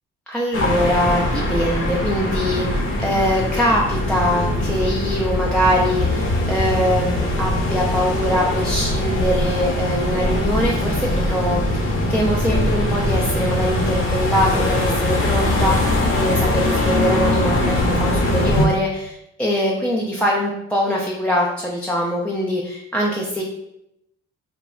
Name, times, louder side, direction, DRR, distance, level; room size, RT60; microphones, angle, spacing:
voice 1, 0.3-23.4, equal, 5° left, -4 dB, 0.3 m, -22 dB
sound 1, 0.5-18.7, left 1 dB, 45° left, 0.8 m, -21 dB
2.1 x 2.1 x 3.6 m, 0.80 s
cardioid pair, 90°, 30 cm